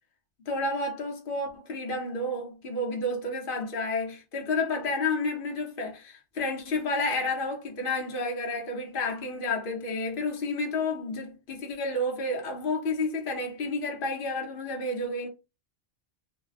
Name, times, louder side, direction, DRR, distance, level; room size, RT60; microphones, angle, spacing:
voice 1, 0.4-15.3, left 2 dB, 55° left, 1.0 m, -30 dB
2.7 x 2.3 x 3.9 m
omnidirectional pair, 1.1 m